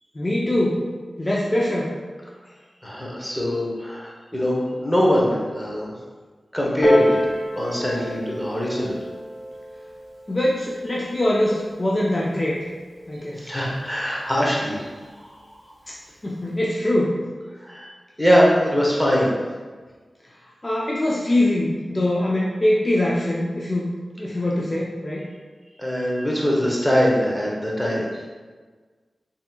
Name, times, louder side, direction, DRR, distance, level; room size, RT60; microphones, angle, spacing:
voice 1, 0.1-0.9 1.2-2.0 10.3-12.7 13.1-13.5 15.9-16.0 16.2-17.1 20.6-23.9 24.2-25.3, left 1 dB, 35° left, -5 dB, 0.4 m, -23 dB
voice 2, 2.8-5.8 6.5-7.2 7.6-9.0 13.4-14.9 17.6-17.9 18.2-19.3 25.8-28.1, equal, 5° left, -4 dB, 0.8 m, -22 dB
Piano, 6.8-12.0 12.8-12.9, equal, 70° left, 1.0 m, -28 dB
3.6 x 2.7 x 2.4 m, 1.4 s
wide cardioid pair, 65°, 0 cm